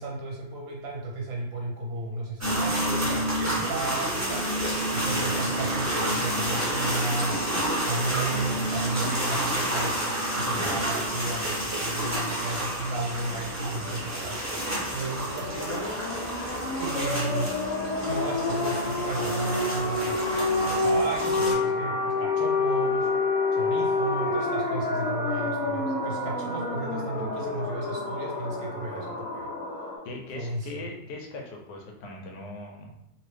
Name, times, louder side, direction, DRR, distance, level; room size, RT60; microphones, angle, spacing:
voice 1, 0.0-7.4 7.8-15.9 16.8-17.6 18.0-23.1 23.5-29.5 30.4-30.9, right 2 dB, 65° right, -1 dB, 0.9 m, -34 dB
sound 1, 2.4-21.5, right 1 dB, 20° right, 0.4 m, -29 dB
sound 2, 15.2-30.0, left 3 dB, 70° left, 1.0 m, -28 dB
voice 2, 30.0-32.9, left 2 dB, 90° left, 0 dB, 1.3 m, -40 dB
2.9 x 2.7 x 3.2 m, 0.79 s
omnidirectional pair, 1.7 m